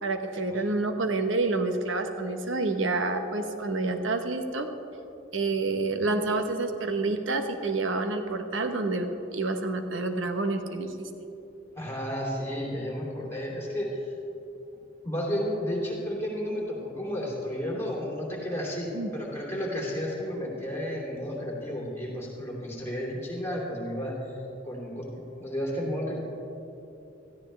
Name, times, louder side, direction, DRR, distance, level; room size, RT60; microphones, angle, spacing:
voice 1, 0.0-4.7 5.3-11.1 18.9-19.1, right 3 dB, 80° right, 6 dB, 1.1 m, -28 dB
voice 2, 11.7-14.1 15.0-24.4 24.6-25.0 25.4-26.2, equal, 15° left, -4 dB, 2.9 m, -32 dB
17.0 x 14.0 x 3.4 m, 2.9 s
head